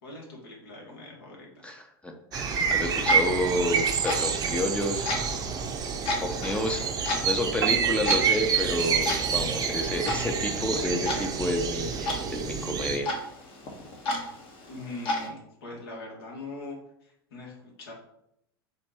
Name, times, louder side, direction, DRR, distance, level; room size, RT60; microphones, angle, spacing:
voice 1, 0.0-1.6 14.7-17.9, left 2 dB, 75° left, -1 dB, 1.7 m, -42 dB
voice 2, 1.6-5.2 6.2-13.1, left 1 dB, 10° left, 3 dB, 0.6 m, -30 dB
sound 1, 2.3-13.0, right 6 dB, 30° right, 0.7 m, -28 dB
Clock, 2.7-15.3, left 2 dB, 45° left, 1.1 m, -35 dB
sound 2, 7.6-9.1, right 9 dB, 90° right, 0.5 m, -35 dB
4.3 x 2.6 x 4.3 m, 0.76 s
hypercardioid pair, 100°, 13 cm